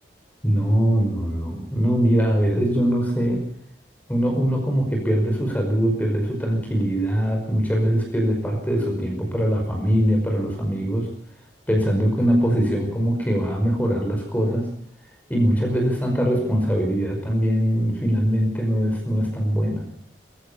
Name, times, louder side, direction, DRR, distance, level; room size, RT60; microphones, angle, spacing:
voice 1, 0.4-3.4 4.1-11.1 11.7-14.7 15.3-19.8, equal, 10° left, 1 dB, 5.4 m, -22 dB
21.5 x 15.5 x 8.7 m, 0.64 s
head